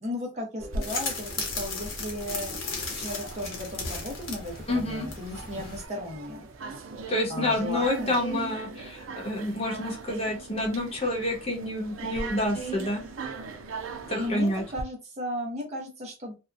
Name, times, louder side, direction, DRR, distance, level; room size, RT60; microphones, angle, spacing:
voice 1, 0.0-2.6 2.9-6.5 7.3-8.2 14.2-16.3, left 1 dB, 35° right, 0 dB, 0.9 m, -35 dB
sound 1, 0.6-14.8, right 4 dB, 90° right, 0.5 m, -40 dB
sound 2, 0.8-5.8, left 3 dB, 85° left, 0.8 m, -35 dB
voice 2, 4.7-5.1 7.1-13.0 14.1-14.6, left 1 dB, 30° left, 0 dB, 0.9 m, -28 dB
2.7 x 2.3 x 2.5 m, 0.29 s
head